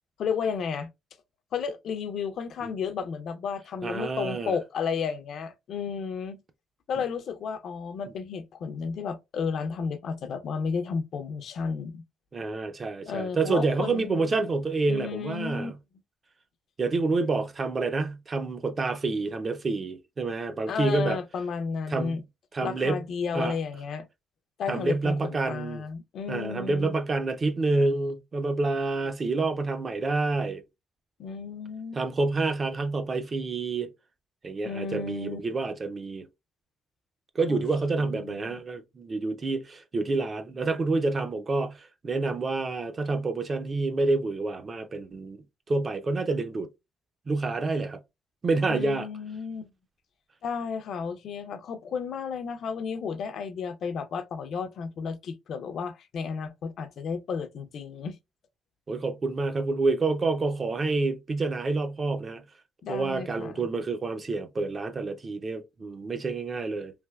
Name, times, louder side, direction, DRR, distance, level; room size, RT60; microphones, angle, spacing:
voice 1, 0.2-0.9 1.5-6.4 6.9-12.0 13.1-14.3 14.9-15.7 20.7-22.2 22.6-24.1 24.6-27.0 31.2-32.0 34.6-35.4 37.5-37.6 38.0-38.6 48.7-49.7 50.4-58.2 62.8-63.7, left 6 dB, 60° left, 0.4 m, -33 dB
voice 2, 3.8-4.6 12.3-15.8 16.8-21.2 21.9-22.2 22.5-23.0 23.3-23.6 24.7-25.8 26.3-30.6 31.9-33.9 34.4-36.3 37.4-45.4 45.7-46.7 47.3-48.0 48.4-49.1 58.9-62.4 62.9-66.9, right 3 dB, 30° right, 0.4 m, -28 dB
3.3 x 2.7 x 2.2 m
cardioid pair, 130°, 0 cm